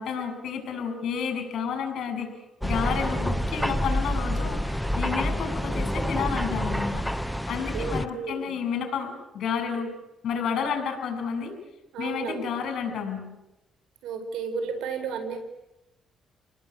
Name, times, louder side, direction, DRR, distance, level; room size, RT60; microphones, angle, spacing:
voice 1, 0.0-2.3 2.6-7.0 7.5-9.9 10.2-11.5 12.0-13.2, left 6 dB, 65° left, 5 dB, 7.1 m, -30 dB
sound 1, 2.6-8.1, equal, ahead, 0.8 m, -28 dB
voice 2, 7.5-8.5 11.9-12.5 14.0-15.4, right 5 dB, 85° right, 7 dB, 4.3 m, -33 dB
28.5 x 20.0 x 8.5 m, 0.95 s
cardioid pair, 90°, 0 cm